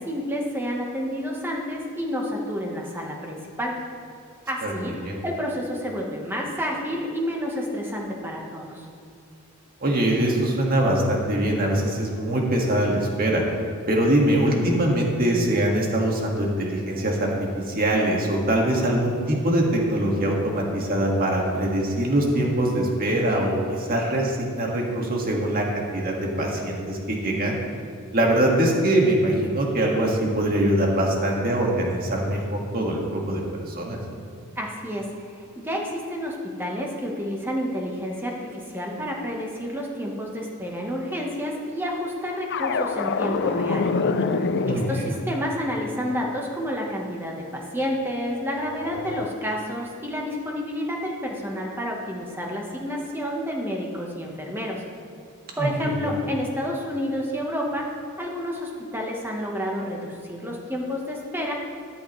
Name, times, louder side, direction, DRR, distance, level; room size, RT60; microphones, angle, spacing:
voice 1, 0.0-3.7 4.5-8.9 34.6-35.1 35.4-43.9 44.3-54.8 55.6-57.9 58.2-61.5, equal, 10° right, -1 dB, 1.2 m, -30 dB
voice 2, 9.8-13.4 13.9-27.6 28.1-34.0 44.6-45.1 55.6-56.1, right 1 dB, 40° right, -1 dB, 1.8 m, -23 dB
sound 1, 42.5-45.2 48.0-49.3, left 4 dB, 50° left, 0.5 m, -26 dB
13.5 x 11.0 x 3.2 m, 2.3 s
head